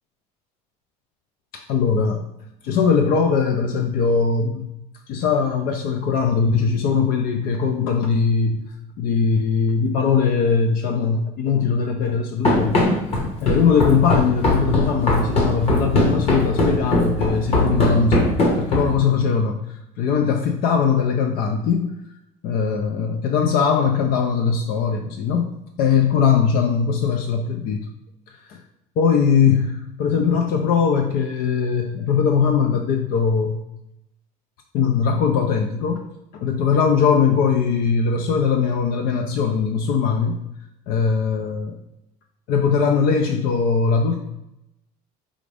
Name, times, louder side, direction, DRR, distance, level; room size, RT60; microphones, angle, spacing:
voice 1, 1.5-2.2 2.6-4.7 5.1-8.6 9.0-19.6 20.0-21.9 22.4-25.5 25.8-27.9 28.5-28.6 29.0-33.6 34.7-36.0 36.3-40.4 40.9-41.8 42.5-44.2, left 6 dB, 60° left, 4 dB, 0.5 m, -20 dB
Run, 12.4-19.1, left 1 dB, 35° left, 1.1 m, -20 dB
4.9 x 2.5 x 3.3 m, 0.84 s
cardioid pair, 125°, 17 cm